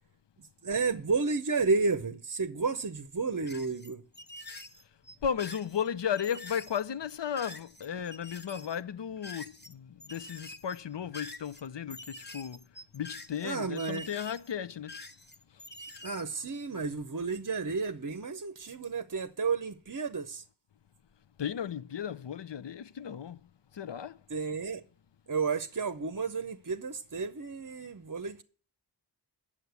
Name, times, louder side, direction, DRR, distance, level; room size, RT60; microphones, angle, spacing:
voice 1, 0.6-4.0 13.4-14.1 16.0-20.4 24.3-24.8 25.3-28.4, right 4 dB, 45° right, 0.7 m, -32 dB
sound 1, 3.5-9.7 10.0-16.2, left 2 dB, 20° left, 1.0 m, -47 dB
voice 2, 5.2-12.6 12.9-15.0 21.4-23.4 23.7-24.2, left 8 dB, 65° left, 0.6 m, -35 dB
9.4 x 7.3 x 8.1 m
wide cardioid pair, 50°, 47 cm